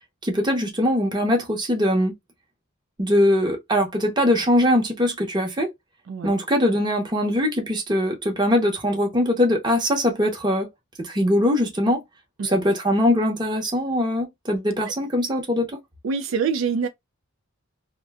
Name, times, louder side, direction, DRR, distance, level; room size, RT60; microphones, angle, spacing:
voice 1, 0.2-2.1 3.0-5.7 6.2-10.7 11.0-12.0 12.4-15.8, left 1 dB, 20° right, 0.8 m, -21 dB
voice 2, 16.0-16.9, right 5 dB, 65° right, 0.3 m, -25 dB
2.6 x 2.2 x 3.4 m
head